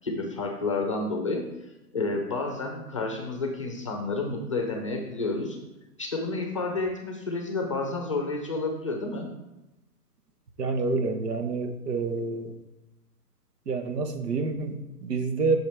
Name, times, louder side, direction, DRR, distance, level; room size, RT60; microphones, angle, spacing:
voice 1, 0.0-1.4 1.9-5.6 6.0-9.3, left 3 dB, 20° left, 2 dB, 0.6 m, -30 dB
voice 2, 10.6-12.5 13.7-15.6, right 4 dB, 80° right, 7 dB, 1.3 m, -28 dB
8.5 x 6.4 x 3.4 m, 1.0 s
hypercardioid pair, 165°, 47 cm